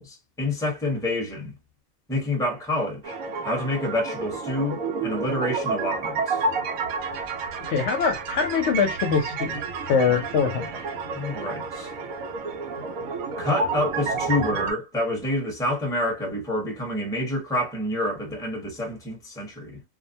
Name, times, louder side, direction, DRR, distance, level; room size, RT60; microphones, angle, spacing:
voice 1, 0.0-1.6 2.1-3.1 3.4-6.5 10.1-10.2 11.1-11.9 13.4-19.8, left 1 dB, 5° left, 0.8 m, -28 dB
sound 1, 3.0-14.7, right 4 dB, 85° right, 1.0 m, -30 dB
voice 2, 7.7-10.7, left 6 dB, 65° left, 0.8 m, -23 dB
2.5 x 2.1 x 2.6 m
omnidirectional pair, 1.4 m